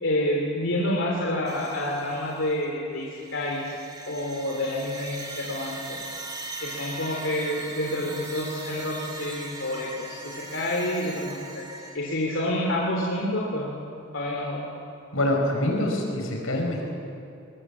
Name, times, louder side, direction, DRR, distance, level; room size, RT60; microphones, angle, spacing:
voice 1, 0.0-3.8 4.0-6.2 6.6-11.6 11.9-13.8 14.1-14.6, left 1 dB, 65° left, -3 dB, 3.2 m, -28 dB
sound 1, 1.5-2.6 3.0-12.0, right 3 dB, 20° right, 2.9 m, -40 dB
voice 2, 15.1-16.9, left 1 dB, 85° left, 1 dB, 5.5 m, -25 dB
22.5 x 21.0 x 7.4 m, 2.6 s
head